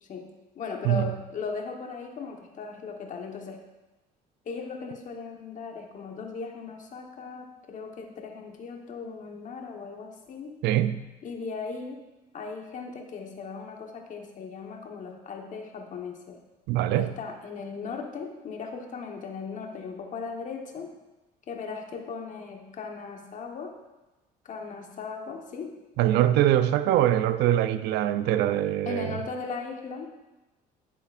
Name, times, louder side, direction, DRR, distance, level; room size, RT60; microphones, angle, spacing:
voice 1, 0.0-3.6 4.4-10.6 11.2-12.0 12.3-16.4 17.0-20.9 21.5-23.8 24.4-25.8 28.8-30.1, left 5 dB, 50° left, 1.2 m, -38 dB
voice 2, 10.6-11.0 16.7-17.1 26.0-29.2, right 12 dB, 85° right, 0.5 m, -23 dB
10.5 x 7.5 x 2.5 m
cardioid pair, 110°, 17 cm